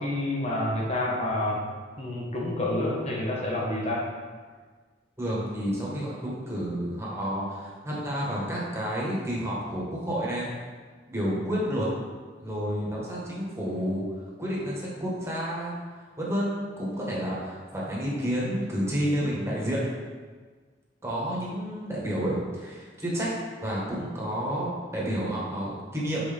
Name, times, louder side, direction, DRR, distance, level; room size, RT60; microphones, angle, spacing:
voice 1, 0.0-1.6 2.0-4.1, left 1 dB, 35° left, -3 dB, 1.3 m, -28 dB
voice 2, 5.2-10.6 11.1-11.9 12.4-14.0 14.4-15.8 16.2-19.8 21.0-23.3 23.6-26.2, equal, 15° right, -6 dB, 1.5 m, -30 dB
6.2 x 4.7 x 3.5 m, 1.5 s
head